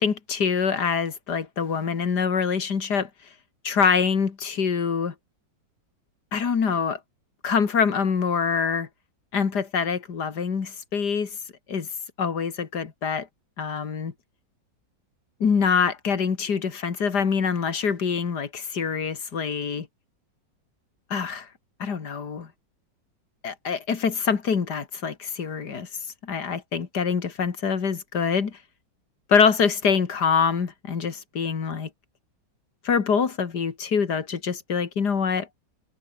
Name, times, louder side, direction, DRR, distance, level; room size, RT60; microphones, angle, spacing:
voice 1, 0.0-3.1 3.6-5.1 6.3-7.0 7.4-8.9 9.3-11.4 11.7-11.9 12.2-13.3 13.6-14.1 15.4-19.9 21.1-21.5 21.8-22.5 23.4-25.9 26.2-28.6 29.3-31.9 32.8-35.5, left 6 dB, 60° left, 2.6 m, -25 dB
omnidirectional pair, 2.0 m